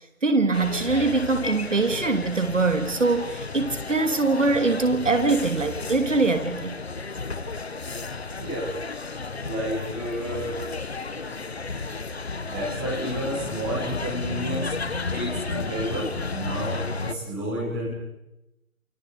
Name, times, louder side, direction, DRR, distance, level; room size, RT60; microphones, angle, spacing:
voice 1, 0.2-6.8, right 3 dB, 60° right, 8 dB, 3.3 m, -23 dB
sound 1, 0.5-17.1, left 4 dB, 50° left, 1.4 m, -33 dB
voice 2, 8.4-8.7 9.4-10.6 11.1-11.4 12.5-14.8 15.1-17.9, right 1 dB, 5° right, -5 dB, 1.5 m, -31 dB
29.0 x 26.5 x 5.1 m, 0.91 s
figure-of-eight pair, 165°, 41 cm